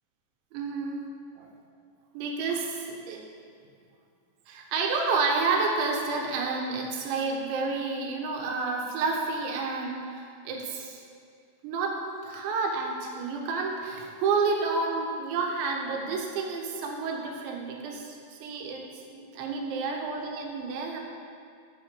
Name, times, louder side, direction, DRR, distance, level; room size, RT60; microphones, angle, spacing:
voice 1, 0.5-1.1 1.4-1.5 2.1-3.2 4.5-11.0 11.6-21.0, right 4 dB, 75° right, 1 dB, 3.4 m, -30 dB
8.9 x 7.6 x 6.9 m, 2.3 s
omnidirectional pair, 5.5 m